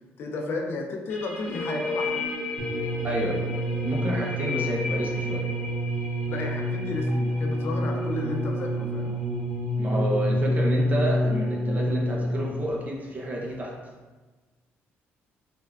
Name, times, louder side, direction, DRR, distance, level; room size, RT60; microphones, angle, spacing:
voice 1, 0.2-2.3 6.3-9.1, left 2 dB, 55° left, 1 dB, 0.4 m, -33 dB
sound 1, 1.1-12.5, left 2 dB, 20° left, 0.9 m, -48 dB
sound 2, 1.4-8.8, left 3 dB, 85° left, 0.9 m, -35 dB
sound 3, 2.6-12.7 13.5-13.6, equal, 85° right, 0.5 m, -27 dB
voice 2, 3.0-3.4 3.8-5.5 9.8-13.8, right 1 dB, 35° right, -1 dB, 0.5 m, -30 dB
3.3 x 2.1 x 2.3 m, 1.3 s
cardioid pair, 95°, 5 cm